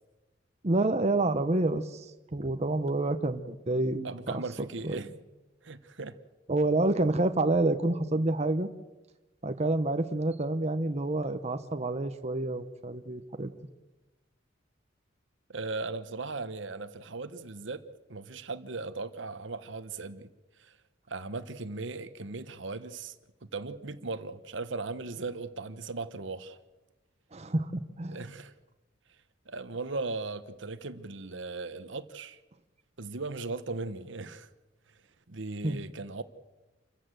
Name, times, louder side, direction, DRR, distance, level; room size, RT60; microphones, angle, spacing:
voice 1, 0.6-4.4 4.8-5.0 6.5-8.7 9.4-13.5 27.3-28.3 35.6-35.8, right 2 dB, 35° right, 1.0 m, -28 dB
voice 2, 4.0-5.1 5.6-6.2 15.5-17.8 18.1-20.3 20.6-20.7 21.1-23.2 23.5-26.6 28.1-28.5 29.5-32.4 33.0-34.5 35.3-36.2, right 3 dB, 70° right, 1.2 m, -37 dB
28.0 x 14.5 x 7.7 m
head